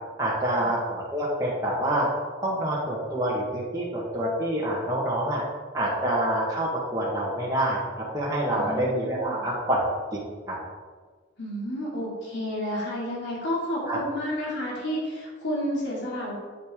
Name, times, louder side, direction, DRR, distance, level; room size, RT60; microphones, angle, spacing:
voice 1, 0.2-2.1 2.4-5.4 5.7-7.8 8.1-9.8 10.5-10.6 13.8-14.0, right 1 dB, 20° right, -6 dB, 1.3 m, -26 dB
voice 2, 8.5-9.4 11.4-16.3, equal, 70° left, -4 dB, 2.6 m, -31 dB
8.4 x 7.6 x 3.6 m, 1.5 s
head